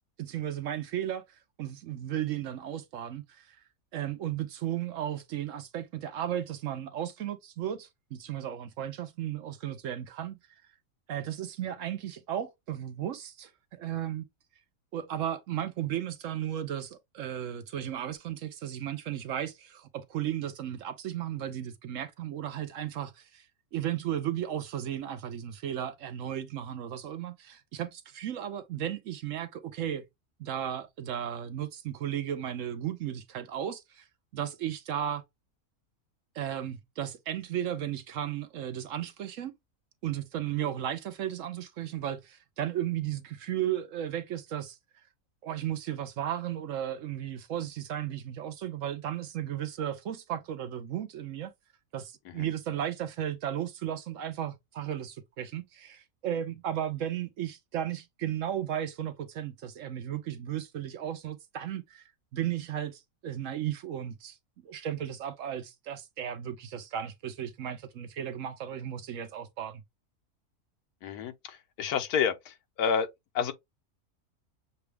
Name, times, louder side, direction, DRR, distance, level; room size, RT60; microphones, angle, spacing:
voice 1, 0.2-1.2 1.6-3.6 3.9-10.4 11.1-14.3 14.9-23.5 23.7-30.1 30.4-34.1 34.3-35.2 36.3-39.5 40.0-44.8 45.4-51.5 51.9-64.4 64.6-69.8, right 10 dB, 65° right, 0.9 m, -35 dB
voice 2, 71.0-72.3 72.8-73.1 73.3-73.5, left 7 dB, 85° left, 1.3 m, -28 dB
6.7 x 2.3 x 3.2 m
omnidirectional pair, 1.6 m